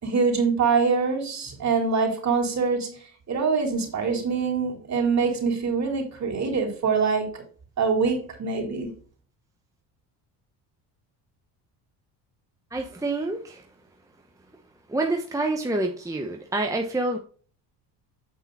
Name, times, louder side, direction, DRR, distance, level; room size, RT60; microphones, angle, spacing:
voice 1, 0.0-3.0 3.3-7.4 7.8-8.9, right 5 dB, 40° right, -1 dB, 4.0 m, -24 dB
voice 2, 12.7-13.6 14.9-17.2, right 2 dB, 10° right, 2 dB, 1.0 m, -27 dB
8.8 x 4.9 x 4.1 m, 0.42 s
cardioid pair, 95°, 43 cm